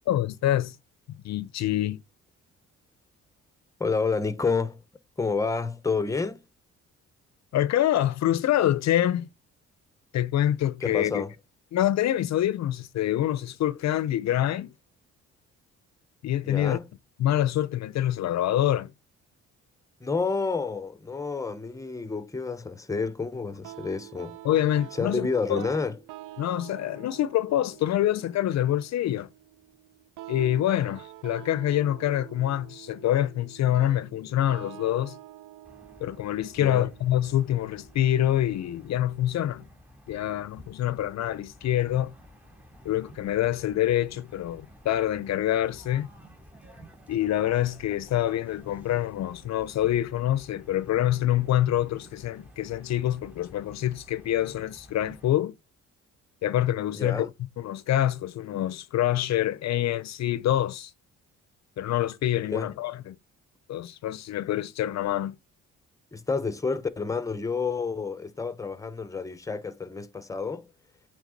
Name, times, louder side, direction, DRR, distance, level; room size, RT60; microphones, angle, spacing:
voice 1, 0.1-0.8 1.2-2.0 7.5-9.3 10.1-11.2 11.7-14.7 16.2-16.8 17.2-18.9 24.4-25.6 26.4-29.3 30.3-35.2 36.0-39.6 40.1-42.1 42.8-46.1 47.1-55.5 56.4-57.3 57.6-60.9 61.8-63.2 63.7-65.3, left 12 dB, 60° left, 0.5 m, -26 dB
voice 2, 3.8-4.8 5.2-6.4 10.8-11.3 16.4-16.9 20.0-24.4 24.9-26.0 36.6-36.9 56.9-57.3 62.5-62.7 66.1-70.7, left 4 dB, 10° left, 0.8 m, -29 dB
sound 1, 23.6-38.6, right 15 dB, 85° right, 0.6 m, -47 dB
sound 2, 35.6-55.3, equal, 5° right, 2.7 m, -52 dB
8.2 x 3.5 x 3.8 m
cardioid pair, 90°, 30 cm